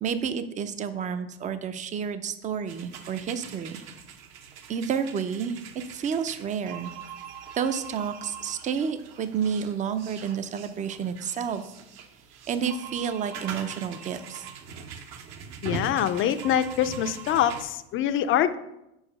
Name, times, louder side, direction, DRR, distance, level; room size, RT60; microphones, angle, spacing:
voice 1, 0.0-3.8 4.7-5.6 5.9-6.9 7.6-11.6 12.5-14.4, right 7 dB, 25° right, 11 dB, 0.5 m, -30 dB
sound 1, 2.7-17.6, right 6 dB, 55° right, 0.9 m, -42 dB
voice 2, 15.6-18.6, left 10 dB, 40° left, 11 dB, 0.5 m, -24 dB
4.9 x 4.8 x 5.3 m, 0.87 s
supercardioid pair, 105°, 33 cm